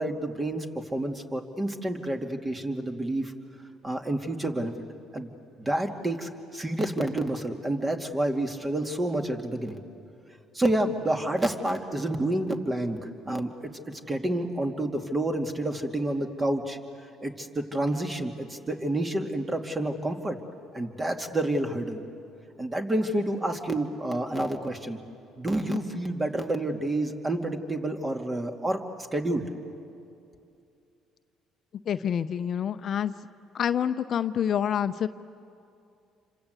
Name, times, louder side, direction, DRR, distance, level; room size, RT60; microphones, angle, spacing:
voice 1, 0.0-3.3 3.8-4.7 5.1-5.3 5.6-9.8 10.5-16.8 17.2-20.4 20.7-22.0 22.6-25.0 25.4-29.4, right 1 dB, 20° right, 4 dB, 2.5 m, -29 dB
voice 2, 31.9-33.1 33.5-35.1, left 9 dB, 55° left, 11 dB, 0.7 m, -27 dB
28.0 x 26.0 x 8.3 m, 2.6 s
supercardioid pair, 70°, 0 cm